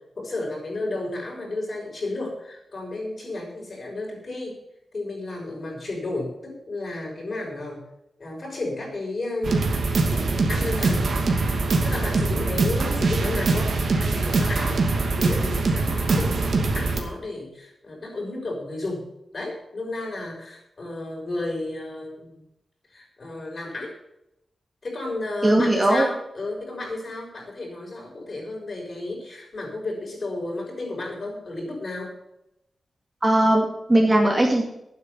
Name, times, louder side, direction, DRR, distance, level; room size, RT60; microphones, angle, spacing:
voice 1, 0.2-4.6 4.9-7.8 8.2-9.7 10.5-11.1 11.3-14.8 15.1-19.0 19.3-22.4 22.9-23.9 24.8-32.1, left 2 dB, 45° left, -1 dB, 6.3 m, -32 dB
sound 1, 9.4-17.0, right 3 dB, 65° right, 2.4 m, -23 dB
voice 2, 25.4-26.1 33.2-34.6, right 1 dB, 20° right, 0 dB, 2.4 m, -19 dB
12.0 x 9.6 x 7.0 m, 0.82 s
wide cardioid pair, 135°, 0 cm